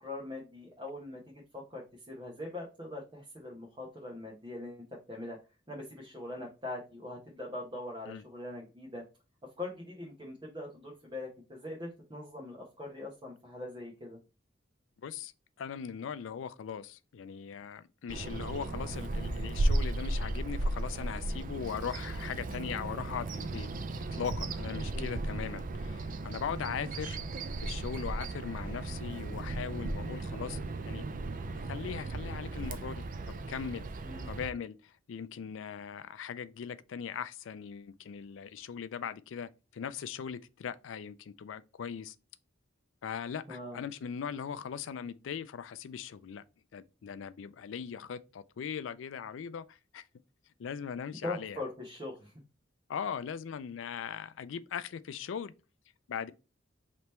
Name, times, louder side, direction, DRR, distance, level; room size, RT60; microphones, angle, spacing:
voice 1, 0.0-5.4 5.7-9.0 9.6-14.2 24.9-25.1 34.0-34.3 43.5-43.8 51.2-52.3, left 2 dB, 25° right, 0.9 m, -42 dB
voice 2, 15.0-15.3 15.6-23.7 24.1-27.2 27.6-30.6 30.8-31.1 31.7-33.9 34.3-42.2 43.0-46.4 46.7-50.0 50.6-51.6 52.9-55.5 56.1-56.3, left 7 dB, 80° left, 0.4 m, -39 dB
Bird vocalization bird call bird song, 18.1-34.5, right 2 dB, 45° right, 0.4 m, -35 dB
3.4 x 2.9 x 4.2 m
head